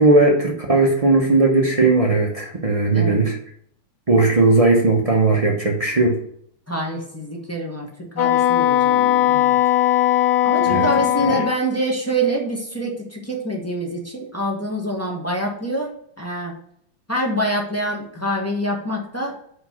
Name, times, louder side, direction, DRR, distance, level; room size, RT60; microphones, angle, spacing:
voice 1, 0.0-3.3 4.1-6.2 10.7-10.9 11.3-11.4, right 3 dB, 65° right, -1 dB, 0.3 m, -17 dB
voice 2, 2.9-3.2 6.7-9.6 10.4-16.5 17.1-19.4, right 1 dB, 10° left, -2 dB, 1.1 m, -26 dB
Wind instrument woodwind instrument, 8.2-11.6, left 12 dB, 80° left, 1.7 m, -18 dB
5.0 x 4.9 x 5.8 m, 0.65 s
omnidirectional pair, 2.2 m